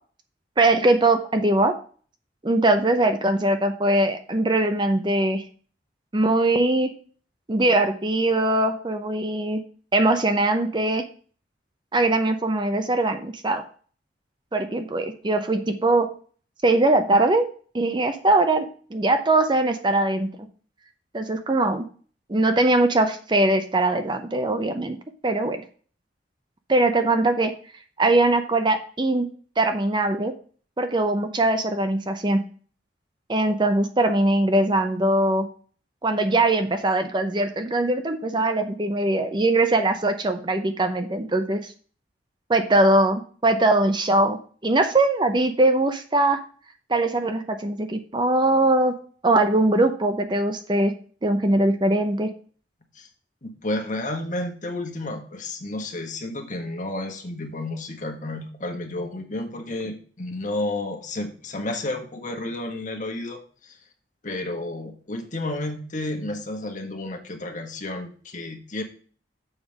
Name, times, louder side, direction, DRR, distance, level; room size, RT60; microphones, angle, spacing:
voice 1, 0.6-1.7 2.4-5.4 6.1-6.9 7.5-9.6 9.9-11.0 11.9-13.6 14.5-16.1 16.6-17.4 17.7-20.3 21.1-21.8 22.3-25.0 25.2-25.6 26.7-27.5 28.0-29.3 29.6-30.3 30.8-32.4 33.3-35.5 36.0-41.7 42.5-44.4 44.6-46.4 46.9-48.9 49.2-50.9 51.2-52.3, right 2 dB, 25° right, 8 dB, 0.6 m, -21 dB
voice 2, 53.4-63.8 64.2-68.8, left 2 dB, 45° left, 4 dB, 1.5 m, -31 dB
7.2 x 5.3 x 5.2 m, 0.43 s
head